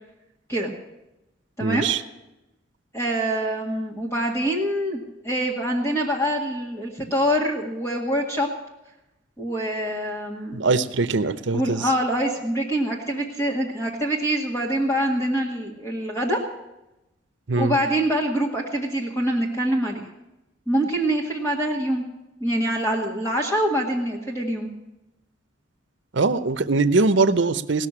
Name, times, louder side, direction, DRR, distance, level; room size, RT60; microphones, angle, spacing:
voice 1, 1.6-2.0 10.5-11.8 17.5-17.8 26.1-27.9, right 3 dB, 70° right, 13 dB, 0.8 m, -21 dB
voice 2, 2.9-8.5 9.4-10.7 11.5-16.4 17.5-20.1 20.7-22.0 22.4-24.7, right 1 dB, 15° left, -2 dB, 1.9 m, -25 dB
18.0 x 6.7 x 9.8 m, 0.92 s
head